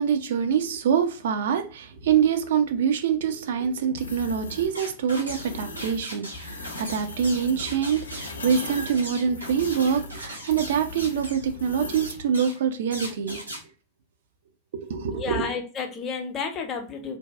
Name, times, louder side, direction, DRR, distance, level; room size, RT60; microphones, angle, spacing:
voice 1, 0.0-13.4 14.8-15.5, right 7 dB, 60° right, 0.3 m, -25 dB
sound 1, 4.0-4.7 5.3-6.0 6.3-12.2, left 2 dB, 70° left, 0.5 m, -38 dB
sound 2, 4.7-5.5 5.8-11.5 11.9-12.6 12.9-13.6, equal, 85° right, 1.3 m, -38 dB
voice 2, 15.1-17.2, left 5 dB, 30° left, 0.6 m, -31 dB
2.6 x 2.1 x 2.2 m
figure-of-eight pair, 90°, 0 cm